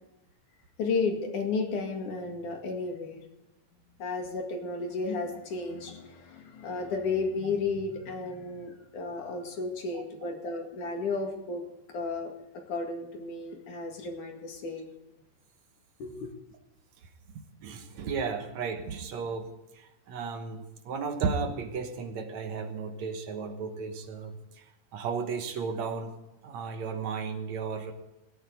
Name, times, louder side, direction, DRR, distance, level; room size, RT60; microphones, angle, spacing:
voice 1, 0.8-3.2 4.0-11.6 11.9-12.3 12.7-14.9 16.0-16.3, left 4 dB, 65° left, 2 dB, 3.6 m, -33 dB
voice 2, 17.6-24.6 24.9-26.1 26.4-27.9, right 5 dB, 60° right, 6 dB, 2.3 m, -34 dB
19.0 x 13.5 x 4.0 m, 0.96 s
omnidirectional pair, 4.0 m